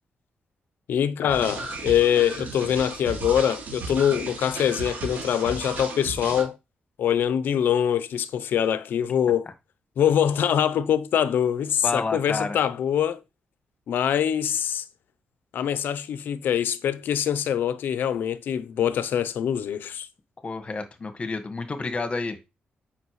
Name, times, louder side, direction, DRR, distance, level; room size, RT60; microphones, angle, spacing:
voice 1, 0.9-6.6 7.0-9.5 10.0-13.2 13.9-14.8 15.5-20.1, left 9 dB, 85° left, 0.6 m, -24 dB
sound 1, 1.3-6.4, right 3 dB, 65° right, 3.2 m, -35 dB
voice 2, 11.8-12.6 20.4-22.4, left 3 dB, 35° left, 1.5 m, -29 dB
8.1 x 5.7 x 3.2 m
cardioid pair, 90°, 3 cm